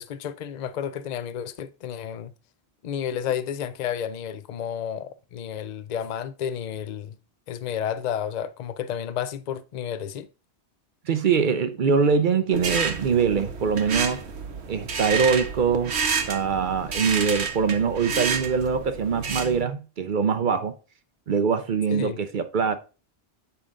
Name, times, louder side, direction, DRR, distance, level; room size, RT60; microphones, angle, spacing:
voice 1, 0.0-2.3 2.8-7.2 7.5-10.3 21.9-22.2, left 9 dB, 50° left, 0.5 m, -31 dB
voice 2, 11.1-14.2 14.7-16.0 16.3-20.7 21.3-22.8, right 6 dB, 55° right, 0.7 m, -23 dB
sound 1, 12.5-19.6, right 5 dB, 70° right, 1.2 m, -29 dB
6.9 x 5.0 x 3.7 m
omnidirectional pair, 1.2 m